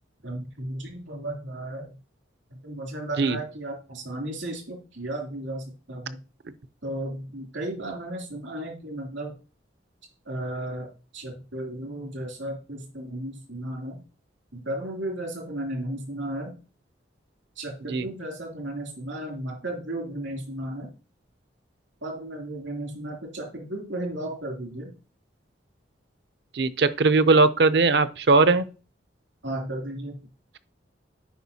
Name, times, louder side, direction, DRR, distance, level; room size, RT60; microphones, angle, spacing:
voice 1, 0.2-1.9 2.6-6.2 6.8-9.3 10.2-10.9 11.1-14.0 14.5-16.5 17.6-20.9 22.0-24.9 29.4-30.2, right 1 dB, 85° right, 2.8 m, -34 dB
voice 2, 26.5-28.6, right 3 dB, 60° right, 0.5 m, -19 dB
10.0 x 5.0 x 2.7 m
head